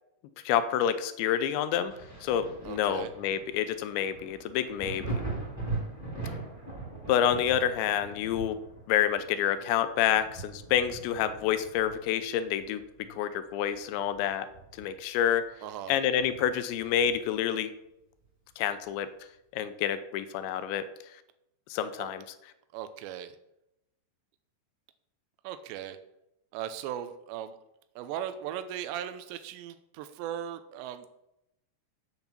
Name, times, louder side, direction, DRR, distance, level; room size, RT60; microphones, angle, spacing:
voice 1, 0.5-1.9 2.2-5.2 7.1-8.6 8.9-14.5 14.8-15.5 15.9-17.7 18.6-19.1 19.5-20.9 21.7-22.2, left 10 dB, 85° left, 11 dB, 3.0 m, -28 dB
Thunder, 1.9-13.2 13.6-15.1 15.5-15.6 16.2-17.4 18.9-19.0, right 3 dB, 5° right, 2.8 m, -41 dB
voice 2, 2.7-3.1 15.6-16.0 22.0-22.1 22.7-23.3 25.4-26.0 26.5-27.6 28.0-31.1, right 10 dB, 85° right, 10 dB, 2.9 m, -38 dB
8.1 x 7.2 x 7.4 m, 0.84 s
omnidirectional pair, 5.3 m